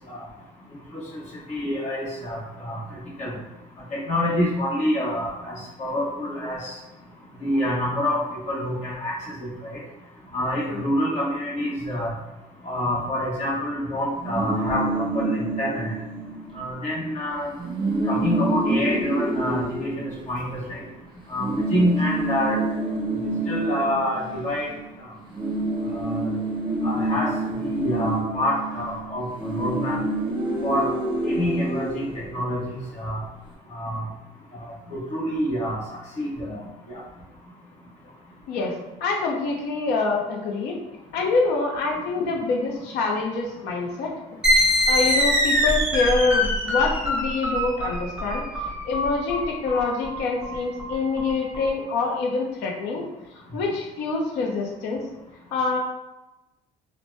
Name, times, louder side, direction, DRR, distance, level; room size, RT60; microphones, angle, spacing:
voice 1, 0.9-1.2 1.5-2.8 3.2-3.3 3.9-6.7 7.4-9.1 9.4-9.7 10.3-12.1 12.6-15.9 16.5-17.5 18.1-20.8 21.3-22.6 23.5-24.7 25.9-26.2 26.8-27.3 27.6-30.0 30.6-30.9 31.2-33.2 33.7-34.0 34.6-35.8 36.2-36.6 36.9-37.0, equal, 45° left, -5 dB, 1.1 m, -27 dB
sound 1, 14.2-16.7 17.0-17.2 17.5-20.9 21.4-24.9 25.2-32.8, right 2 dB, 30° right, 0.7 m, -28 dB
voice 2, 38.5-40.8 41.1-44.1 44.9-48.4 48.8-53.0 53.5-55.0 55.5-55.8, left 3 dB, 85° left, 1 dB, 0.7 m, -25 dB
sound 2, 44.4-51.7, left 1 dB, 5° right, 1.3 m, -23 dB
2.6 x 2.1 x 3.1 m, 0.98 s
cardioid pair, 110°, 17 cm